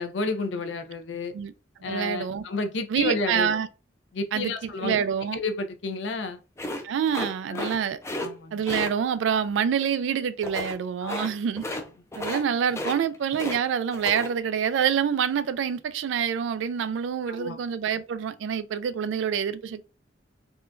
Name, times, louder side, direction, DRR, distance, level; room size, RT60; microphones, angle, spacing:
voice 1, 0.0-1.3 1.8-3.6 4.1-5.0 5.3-6.4 7.5-7.8 8.2-8.6 11.0-11.1 17.3-17.6, left 3 dB, 75° left, 0.4 m, -31 dB
voice 2, 1.9-2.4 2.9-3.7 4.3-5.4 6.8-8.0 8.5-11.6 12.1-19.9, right 7 dB, 80° right, 0.3 m, -26 dB
sound 1, 6.6-8.3 8.7-8.9 10.4-10.8 11.1-11.3 11.6-11.9 12.1-12.4 12.7-13.6 13.9-14.3, left 2 dB, 15° left, 0.4 m, -33 dB
3.6 x 2.2 x 2.5 m
head